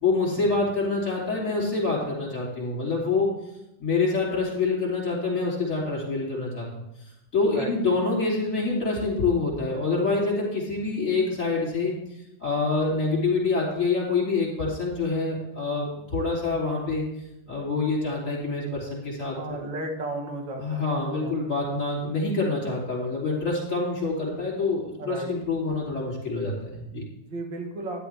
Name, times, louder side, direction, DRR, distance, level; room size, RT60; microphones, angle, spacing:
voice 1, 0.0-3.4 3.8-6.8 7.3-12.0 12.4-17.0 17.5-19.6 20.6-27.0, left 3 dB, 45° left, -3 dB, 3.6 m, -26 dB
voice 2, 19.3-21.4 25.0-25.3 27.2-28.1, right 2 dB, 75° right, 1 dB, 2.3 m, -34 dB
11.5 x 11.0 x 3.5 m, 0.88 s
omnidirectional pair, 2.0 m